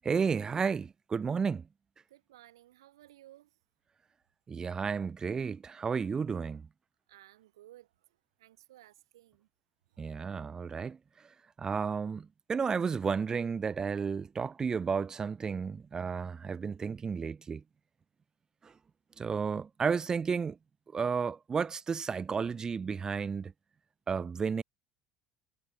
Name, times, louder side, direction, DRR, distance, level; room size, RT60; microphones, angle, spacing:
voice 1, 0.0-1.7 4.5-6.7 10.0-11.0 11.6-17.6 18.6-18.7 19.2-20.6 20.9-23.5 24.1-24.6, right 5 dB, 25° right, 0.4 m, -32 dB
voice 2, 2.1-3.6 7.1-9.5 9.9-10.1, right 14 dB, 75° right, 1.0 m, -58 dB
hypercardioid pair, 70°, 3 cm